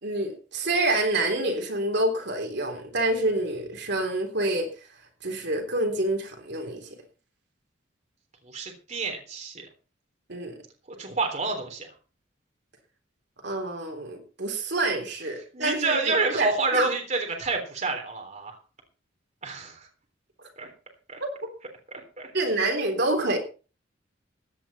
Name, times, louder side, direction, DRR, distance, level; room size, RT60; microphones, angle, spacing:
voice 1, 0.0-4.7 5.2-6.8 10.3-10.5 13.4-16.9 21.2-21.3 22.3-23.4, right 2 dB, 60° right, 4 dB, 3.5 m, -27 dB
voice 2, 8.4-9.7 11.0-11.9 15.5-18.6 19.4-19.9 20.6-20.7 21.1-21.2 21.9-22.3, right 3 dB, 40° right, 3 dB, 3.5 m, -28 dB
16.0 x 10.5 x 4.3 m, 0.35 s
head